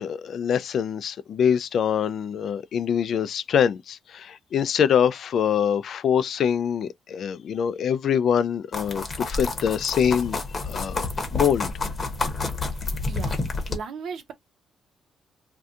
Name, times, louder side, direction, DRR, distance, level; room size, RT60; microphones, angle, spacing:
voice 1, 0.0-10.4 10.7-11.7, left 8 dB, 65° left, 0.3 m, -24 dB
sound 1, 8.7-13.8, left 3 dB, 35° left, 1.0 m, -29 dB
voice 2, 13.1-13.4 13.7-14.3, right 6 dB, 70° right, 0.7 m, -36 dB
2.6 x 2.3 x 3.6 m
cardioid pair, 90°, 0 cm